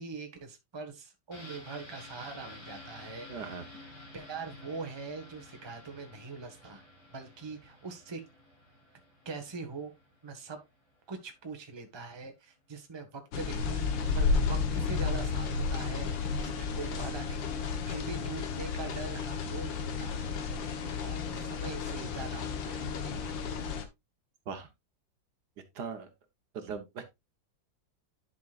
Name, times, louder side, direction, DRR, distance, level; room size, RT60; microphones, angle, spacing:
voice 1, 0.0-3.7 4.1-6.8 7.1-8.2 9.2-9.9 10.2-10.6 11.1-20.7 21.0-22.9, right 4 dB, 15° right, 1.1 m, -43 dB
sound 1, 1.3-10.9 11.2-11.3, left 1 dB, 65° left, 4.1 m, -51 dB
voice 2, 3.3-3.7 24.5-24.7 25.7-26.1 26.5-27.1, right 5 dB, 65° right, 1.6 m, -39 dB
sound 2, 13.3-23.8, left 5 dB, 80° left, 1.8 m, -32 dB
11.0 x 6.1 x 2.4 m
omnidirectional pair, 2.0 m